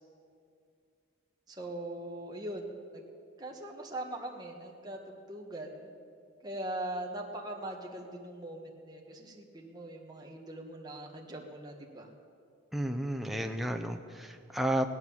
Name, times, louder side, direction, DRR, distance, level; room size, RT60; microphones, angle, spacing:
voice 1, 1.5-2.6 2.9-3.0 3.4-5.9 6.4-12.1, right 1 dB, 20° right, 0 dB, 1.5 m, -41 dB
voice 2, 12.7-14.9, right 1 dB, ahead, 5 dB, 0.6 m, -32 dB
16.5 x 11.0 x 7.2 m, 2.3 s
head